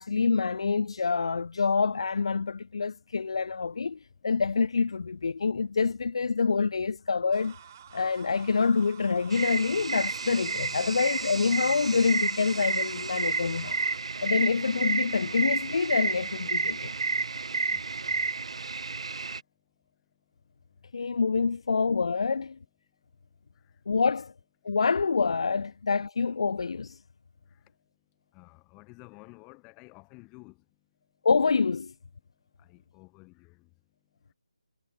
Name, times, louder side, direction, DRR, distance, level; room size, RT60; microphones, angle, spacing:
voice 1, 0.0-7.6 7.9-13.8 14.2-16.9 20.9-22.6 23.9-24.3 24.6-27.0 31.2-31.9, left 5 dB, 55° left, 2.5 m, -26 dB
sound 1, 7.3-14.0, right 10 dB, 30° right, 6.6 m, -50 dB
sound 2, 9.3-19.4, right 4 dB, 65° right, 0.9 m, -31 dB
voice 2, 17.7-18.5 23.5-23.7 27.5-27.6 28.3-30.6 32.6-33.7, left 28 dB, 15° left, 6.6 m, -53 dB
figure-of-eight pair, 165°, 3 cm